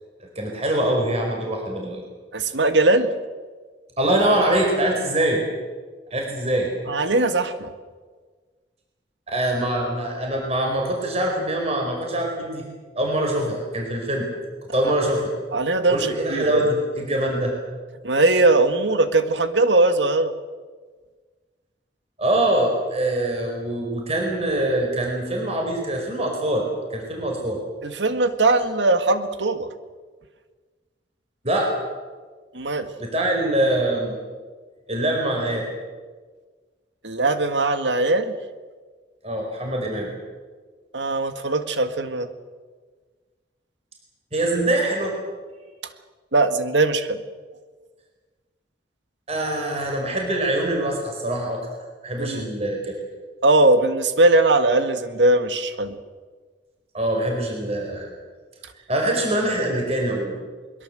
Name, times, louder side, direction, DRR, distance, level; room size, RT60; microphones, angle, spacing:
voice 1, 0.3-2.0 4.0-5.4 6.1-6.7 9.3-12.6 12.9-14.3 14.7-15.3 15.9-17.5 22.2-27.6 31.4-31.7 33.0-34.2 34.9-35.7 39.2-40.1 44.3-45.1 49.3-51.7 52.0-53.0 56.9-58.1 58.9-60.4, right 1 dB, 35° right, 1 dB, 4.8 m, -24 dB
voice 2, 2.3-3.1 6.9-7.7 15.5-16.6 18.0-20.3 27.8-29.7 32.5-32.9 37.0-38.4 40.9-42.3 46.3-47.2 52.2-52.5 53.4-56.0, right 2 dB, 90° right, 9 dB, 1.8 m, -20 dB
22.5 x 22.5 x 7.9 m, 1.4 s
head